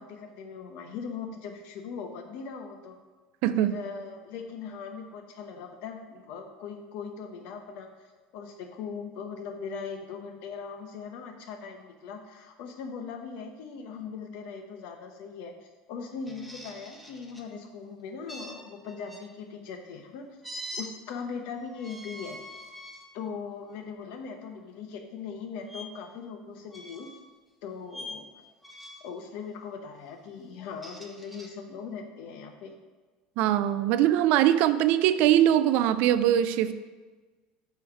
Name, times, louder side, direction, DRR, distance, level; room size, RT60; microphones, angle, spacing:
voice 1, 0.0-3.0 3.6-7.9 8.3-20.3 20.8-22.4 23.1-27.1 27.6-28.3 29.0-32.7, left 5 dB, 70° left, 5 dB, 0.9 m, -40 dB
voice 2, 3.4-3.8 33.4-36.7, right 12 dB, 65° right, 13 dB, 0.4 m, -22 dB
sound 1, 16.3-17.5 18.3-19.2 20.4-20.9 21.7-23.1 23.7-23.9 25.7-25.9 26.7-27.3 27.9-28.2 28.6-29.1 30.6-31.5, equal, ahead, 0.8 m, -43 dB
7.8 x 3.2 x 5.0 m, 1.3 s
supercardioid pair, 120°, 3 cm